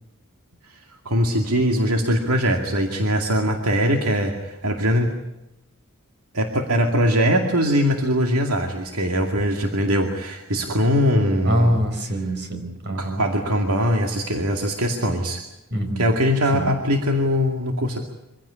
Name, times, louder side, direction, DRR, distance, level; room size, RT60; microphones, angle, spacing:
voice 1, 1.0-5.1 6.3-11.7 13.0-15.4 16.0-18.0, equal, 80° right, 3 dB, 2.4 m, -21 dB
voice 2, 11.4-13.2 15.7-16.2 16.5-16.7, equal, 50° right, 5 dB, 4.8 m, -24 dB
25.0 x 16.0 x 9.9 m, 0.91 s
head